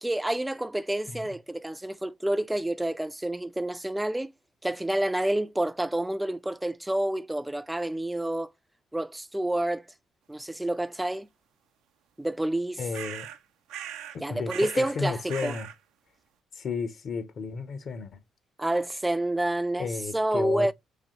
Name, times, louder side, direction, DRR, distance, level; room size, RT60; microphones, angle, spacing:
voice 1, 0.0-4.3 4.6-8.5 8.9-9.8 10.3-11.3 12.2-12.8 14.2-15.6 18.6-20.7, right 1 dB, 10° right, 0.3 m, -28 dB
voice 2, 12.8-13.3 14.1-15.7 16.5-18.2 19.8-20.7, left 5 dB, 55° left, 0.7 m, -33 dB
sound 1, 12.9-13.4 13.7-14.2 14.5-14.9 15.3-15.7, right 10 dB, 80° right, 0.4 m, -39 dB
4.0 x 2.9 x 2.8 m
supercardioid pair, 65°, 0 cm